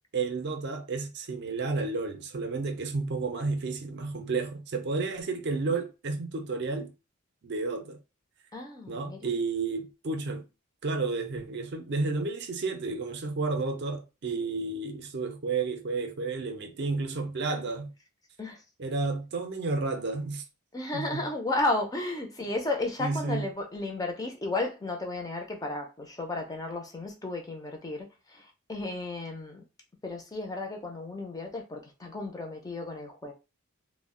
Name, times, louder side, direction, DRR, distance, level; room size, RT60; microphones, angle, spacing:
voice 1, 0.1-6.9 7.4-8.0 8.9-10.4 10.8-17.9 18.8-20.4 20.9-21.3 23.0-23.4, right 3 dB, 50° right, 0.5 m, -31 dB
voice 2, 8.5-9.3 18.4-18.6 20.7-29.6 30.0-33.3, left 2 dB, 15° left, 0.4 m, -33 dB
2.3 x 2.1 x 3.6 m
head